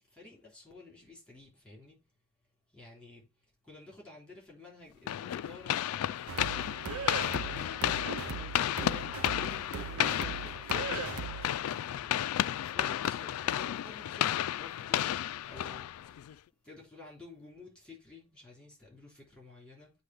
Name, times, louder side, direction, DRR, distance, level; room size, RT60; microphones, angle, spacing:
voice 1, 0.1-2.0 2.7-3.3 3.6-6.8 7.3-10.9 11.6-15.2 15.4-16.1 16.6-19.9, left 3 dB, 5° left, 3.3 m, -52 dB
sound 1, 5.1-16.3, left 11 dB, 85° left, 0.3 m, -33 dB
sound 2, 6.3-11.6, right 6 dB, 75° right, 0.6 m, -39 dB
7.9 x 2.8 x 5.7 m
head